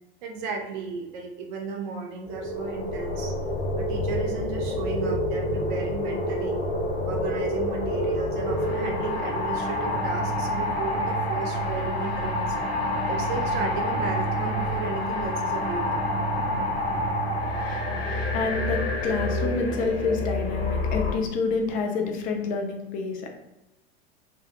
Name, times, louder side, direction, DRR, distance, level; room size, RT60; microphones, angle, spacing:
voice 1, 0.2-3.3 3.8-6.6 7.1-12.5 13.1-15.9, right 4 dB, 50° right, 1 dB, 0.6 m, -34 dB
sound 1, 2.3-21.1, left 1 dB, 65° left, 0.8 m, -27 dB
voice 2, 18.3-23.3, left 4 dB, 25° left, 3 dB, 0.4 m, -28 dB
2.3 x 2.0 x 2.8 m, 0.94 s
figure-of-eight pair, 80°, 32 cm